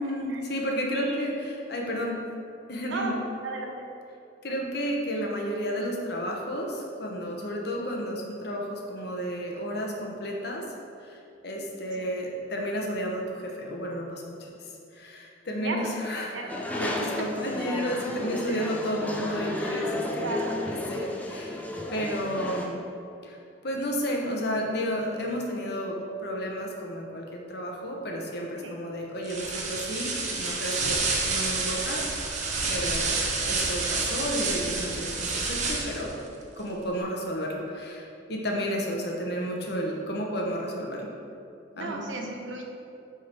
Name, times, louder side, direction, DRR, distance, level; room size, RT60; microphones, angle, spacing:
voice 1, 0.0-2.2 2.7-3.2 4.4-10.7 11.0-16.4 16.7-21.6 21.9-22.8 23.2-32.1 32.7-33.2 33.5-36.1 36.6-41.1 41.8-42.4, equal, 60° left, 0 dB, 1.0 m, -32 dB
voice 2, 0.9-1.3 2.9-3.8 11.9-12.0 15.6-15.9 16.2-16.6 18.5-18.7 20.2-20.6 28.6-28.8 41.7-42.6, right 2 dB, 85° right, 1 dB, 0.9 m, -35 dB
sound 1, 16.5-22.7, left 1 dB, 10° left, 0.5 m, -33 dB
sound 2, 29.2-36.1, right 3 dB, 40° right, 0.9 m, -29 dB
8.4 x 3.7 x 4.4 m, 2.6 s
head